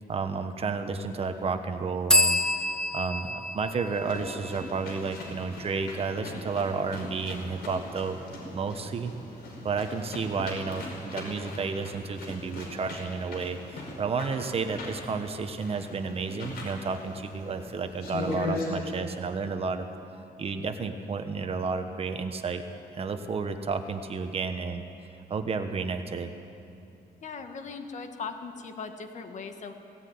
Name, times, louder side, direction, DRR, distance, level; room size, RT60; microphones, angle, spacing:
voice 1, 0.1-2.4 2.7-8.2 8.5-9.1 9.6-19.9 20.4-22.6 22.9-24.8 25.3-26.3, right 4 dB, 40° right, 7 dB, 1.2 m, -31 dB
sound 1, 2.1-5.7, left 1 dB, 5° left, 1.2 m, -28 dB
sound 2, 3.9-18.8, left 2 dB, 85° left, 5.3 m, -40 dB
sound 3, 10.4-11.2 12.3-12.7 13.4-14.2 14.6-15.2 16.3-17.0 17.6-17.7 17.9-18.6 20.0-21.2, left 2 dB, 25° left, 2.5 m, -46 dB
voice 2, 27.2-29.7, left 5 dB, 50° left, 6 dB, 1.6 m, -39 dB
17.5 x 17.0 x 9.5 m, 2.6 s
cardioid pair, 145°, 16 cm